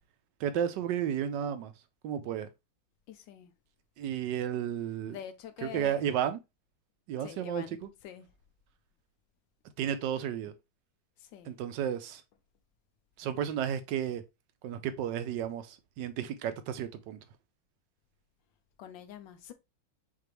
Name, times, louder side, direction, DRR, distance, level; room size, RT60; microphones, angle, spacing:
voice 1, 0.4-1.7 2.0-2.5 4.0-5.2 5.6-6.4 7.1-7.9 9.8-10.5 11.5-12.2 13.2-14.2 14.6-17.2, right 9 dB, 75° right, 1.1 m, -33 dB
voice 2, 3.1-3.5 5.1-6.0 7.2-7.8 8.0-8.3 11.2-11.6 18.8-19.5, left 9 dB, 75° left, 1.3 m, -45 dB
5.9 x 2.8 x 3.0 m
omnidirectional pair, 2.2 m